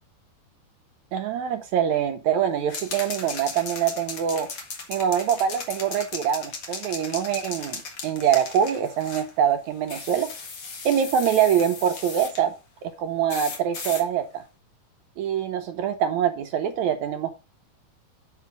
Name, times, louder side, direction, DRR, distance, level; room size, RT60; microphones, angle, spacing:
voice 1, 1.1-4.5 4.9-10.3 10.9-12.5 12.8-14.4 15.2-17.3, right 9 dB, 70° right, 6 dB, 1.9 m, -24 dB
sound 1, 2.7-9.3 9.9-12.4 13.3-14.0, left 4 dB, 45° left, 1.9 m, -37 dB
8.1 x 5.3 x 5.9 m, 0.29 s
omnidirectional pair, 3.9 m